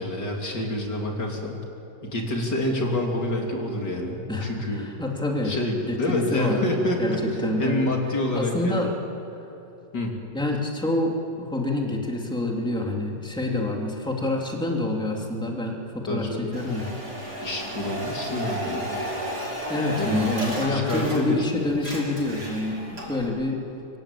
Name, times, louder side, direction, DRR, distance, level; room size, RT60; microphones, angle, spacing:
voice 1, 0.0-1.6 2.0-4.9 5.4-8.9 9.9-10.2 16.1-16.5 17.4-19.0 20.0-20.3 20.6-21.8, left 1 dB, 70° left, 0 dB, 3.8 m, -27 dB
voice 2, 4.3-5.5 5.9-6.7 7.0-7.9 8.3-8.9 10.3-16.9 19.7-23.6, left 2 dB, ahead, -1 dB, 2.9 m, -27 dB
sound 1, 16.5-21.5 21.7-23.3, equal, 60° right, 6.6 m, -33 dB
26.0 x 24.5 x 8.6 m, 2.9 s
omnidirectional pair, 1.9 m